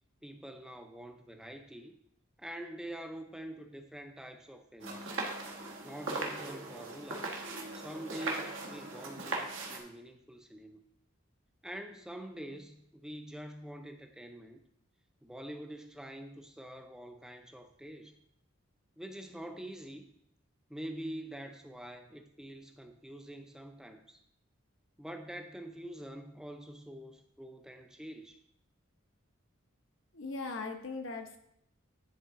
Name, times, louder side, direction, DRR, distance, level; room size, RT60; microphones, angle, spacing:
voice 1, 0.2-2.0 2.4-5.2 5.8-7.3 7.7-10.8 11.6-12.8 13.0-14.6 15.2-18.1 19.0-20.1 20.7-24.2 25.0-28.4, right 1 dB, 5° right, 6 dB, 0.5 m, -45 dB
sound 1, 4.8-9.8, right 2 dB, 70° right, 1.1 m, -39 dB
voice 2, 30.1-31.4, left 3 dB, 65° left, 4 dB, 0.8 m, -39 dB
10.0 x 3.6 x 3.6 m, 0.74 s
head